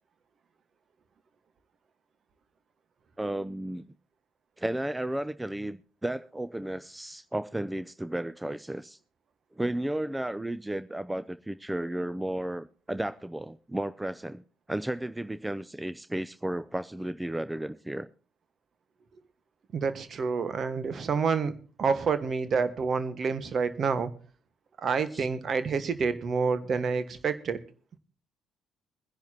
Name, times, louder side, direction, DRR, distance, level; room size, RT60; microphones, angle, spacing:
voice 1, 3.2-3.8 4.6-9.0 9.6-14.4 14.7-18.1 25.1-25.3, right 1 dB, 10° right, 14 dB, 0.6 m, -33 dB
voice 2, 19.7-21.5 21.8-24.1 24.8-27.6, right 5 dB, 50° right, 12 dB, 1.5 m, -28 dB
22.0 x 10.5 x 2.9 m, 0.38 s
hypercardioid pair, 45°, 0 cm